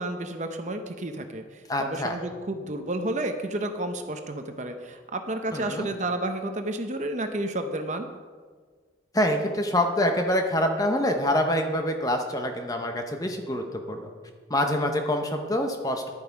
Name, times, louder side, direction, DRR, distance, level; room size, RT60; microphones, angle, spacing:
voice 1, 0.0-8.1, right 1 dB, 40° right, 6 dB, 0.8 m, -31 dB
voice 2, 1.7-2.1 5.5-5.9 9.1-14.1 14.5-16.1, left 1 dB, 20° left, 4 dB, 0.9 m, -26 dB
10.5 x 9.1 x 4.7 m, 1.5 s
head